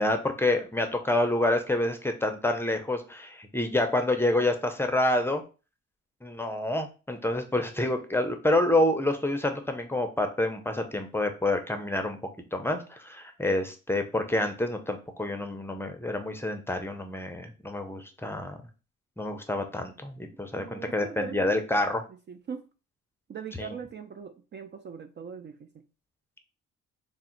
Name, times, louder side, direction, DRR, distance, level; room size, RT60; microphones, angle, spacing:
voice 1, 0.0-5.4 6.2-12.2 12.5-18.6 19.2-22.0 23.5-23.8, left 1 dB, 10° left, 6 dB, 0.6 m, -28 dB
voice 2, 20.5-21.5 22.3-22.7 23.3-25.8, right 6 dB, 35° right, 8 dB, 0.4 m, -40 dB
3.6 x 2.1 x 4.3 m, 0.33 s
cardioid pair, 90°, 30 cm